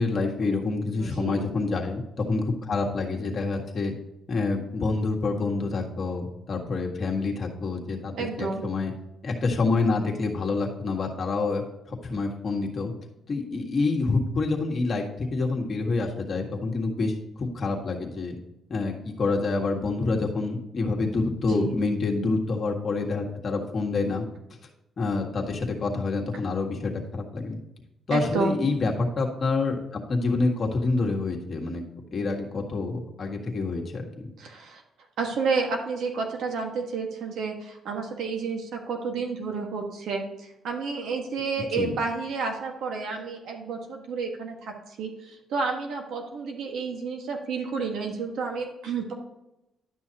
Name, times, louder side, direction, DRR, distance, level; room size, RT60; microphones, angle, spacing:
voice 1, 0.0-3.9 4.3-8.9 9.2-11.6 11.9-12.9 13.3-18.4 18.7-24.3 25.0-27.6 28.1-31.8 32.1-34.3 41.8-42.0, left 3 dB, 45° left, 0 dB, 1.7 m, -27 dB
voice 2, 1.0-1.4 8.2-8.6 21.5-21.7 28.1-28.6 34.4-34.8 35.2-49.1, right 4 dB, 80° right, 2 dB, 1.7 m, -30 dB
11.0 x 6.2 x 2.9 m, 0.88 s
cardioid pair, 90°, 0 cm